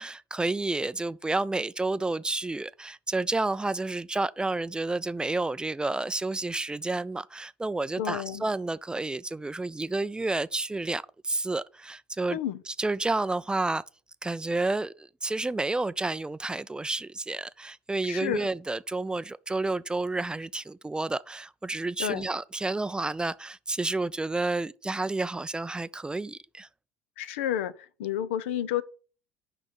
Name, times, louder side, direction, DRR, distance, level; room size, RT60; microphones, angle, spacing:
voice 1, 0.0-12.4 12.7-13.8 14.2-26.7, right 2 dB, 15° right, 0.4 m, -30 dB
voice 2, 8.0-8.4 12.3-12.6 18.1-18.5 22.0-22.3 27.2-27.7 28.0-28.8, left 11 dB, 75° left, 0.6 m, -30 dB
6.2 x 5.4 x 6.9 m
hypercardioid pair, 65°, 7 cm